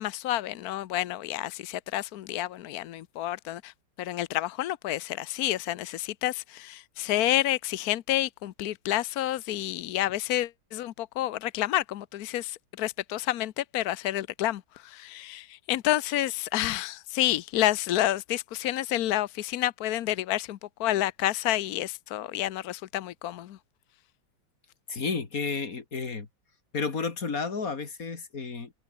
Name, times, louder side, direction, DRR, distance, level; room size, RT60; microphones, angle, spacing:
voice 1, 0.0-3.7 4.0-23.6, left 14 dB, 70° left, 0.9 m, -29 dB
voice 2, 24.9-26.3 26.7-28.7, left 4 dB, 40° left, 2.8 m, -32 dB
omnidirectional pair, 2.3 m